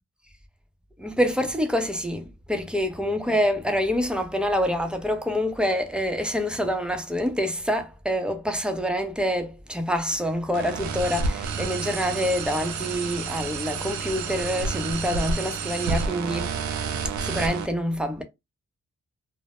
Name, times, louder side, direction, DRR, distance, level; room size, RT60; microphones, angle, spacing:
voice 1, 1.0-16.6 17.2-18.2, equal, 5° right, 0.6 m, -26 dB
sound 1, 10.5-17.6, right 5 dB, 85° right, 0.4 m, -30 dB
2.1 x 2.0 x 2.8 m
cardioid pair, 65°, 29 cm